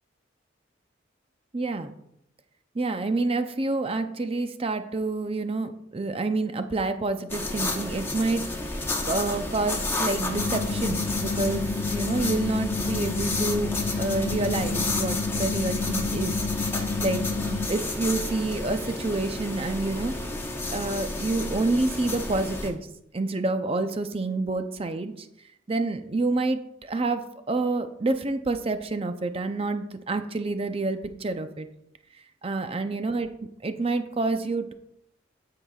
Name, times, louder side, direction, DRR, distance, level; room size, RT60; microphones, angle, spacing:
voice 1, 1.5-1.9 2.8-8.4 9.0-13.7 14.0-16.3 17.0-20.1 20.7-22.9 23.1-25.3 25.7-31.7 32.4-33.3 33.6-34.7, right 2 dB, 30° right, 8 dB, 0.5 m, -28 dB
sound 1, 7.3-22.7, left 2 dB, 10° left, 0.8 m, -31 dB
sound 2, 10.3-17.7, left 4 dB, 65° left, 0.4 m, -30 dB
13.0 x 5.7 x 2.3 m, 0.79 s
head